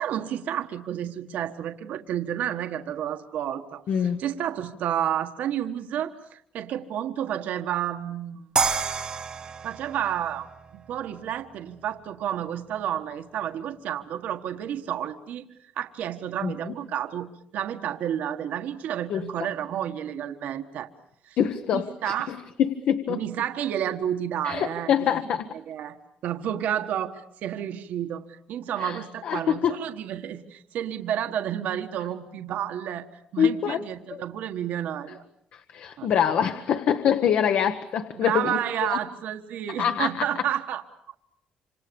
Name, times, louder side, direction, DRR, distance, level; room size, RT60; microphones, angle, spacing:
voice 1, 0.0-8.4 9.6-10.5 10.7-15.4 15.8-17.3 17.5-20.9 21.2-21.4 21.7-22.3 23.1-25.1 25.7-26.0 26.2-35.2 36.0-36.1 38.2-40.8 41.1-41.2, right 10 dB, 70° right, 7 dB, 1.5 m, -30 dB
voice 2, 3.9-4.2 16.4-16.7 19.1-19.3 21.4-23.2 24.4-25.5 28.8-29.8 33.4-33.8 34.1-34.2 35.5-39.0 39.8-40.2, left 8 dB, 60° left, 9 dB, 1.3 m, -25 dB
sound 1, 8.6-11.6, right 5 dB, 30° right, 1.4 m, -30 dB
27.5 x 27.5 x 7.1 m, 0.70 s
cardioid pair, 165°, 3 cm